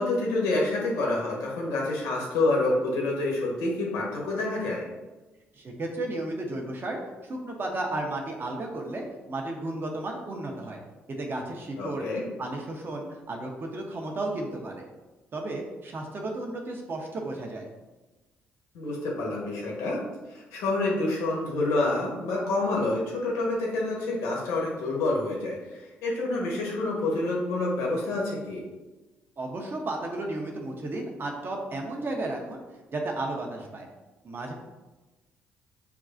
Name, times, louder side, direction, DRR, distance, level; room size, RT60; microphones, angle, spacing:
voice 1, 0.0-4.8 11.8-12.2 18.7-20.0 20.3-28.6, left 2 dB, 75° left, -3 dB, 1.1 m, -28 dB
voice 2, 5.5-10.8 11.1-12.1 12.4-14.9 15.3-17.7 29.4-32.6 32.9-33.9 34.2-34.5, right 2 dB, 45° right, 1 dB, 0.8 m, -33 dB
6.9 x 2.3 x 2.5 m, 1.1 s
hypercardioid pair, 50°, 5 cm